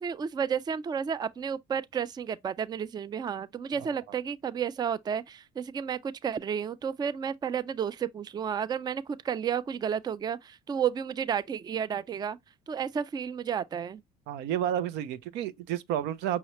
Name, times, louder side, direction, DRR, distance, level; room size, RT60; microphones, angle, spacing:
voice 1, 0.0-12.4 12.7-14.0, right 7 dB, 25° right, 0.3 m, -32 dB
voice 2, 14.3-16.4, right 10 dB, 90° right, 0.5 m, -30 dB
5.6 x 2.9 x 2.9 m
cardioid pair, 110°, 17 cm